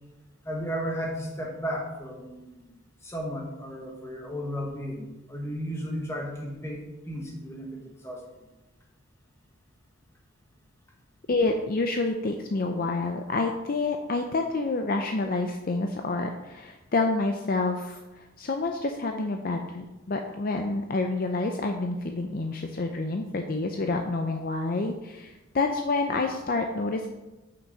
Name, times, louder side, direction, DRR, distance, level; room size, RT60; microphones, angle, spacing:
voice 1, 0.4-2.6 3.0-8.2, equal, 15° left, -1 dB, 1.3 m, -34 dB
voice 2, 11.3-27.1, left 3 dB, 45° left, 4 dB, 0.5 m, -28 dB
6.0 x 5.9 x 5.5 m, 1.0 s
head